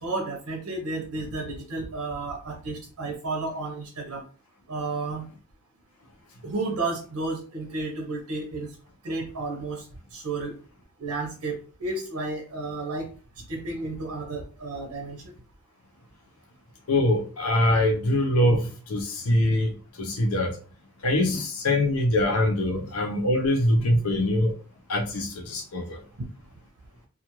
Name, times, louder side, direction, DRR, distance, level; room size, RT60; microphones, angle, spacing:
voice 1, 0.0-4.2 4.7-5.2 6.4-8.7 9.0-9.9 10.1-10.5 11.0-13.1 13.5-15.3, right 3 dB, 80° right, 0.7 m, -32 dB
voice 2, 16.9-19.7 20.0-20.6 21.0-24.5 24.9-26.0, left 1 dB, 80° left, 0.7 m, -23 dB
2.4 x 2.3 x 3.0 m
head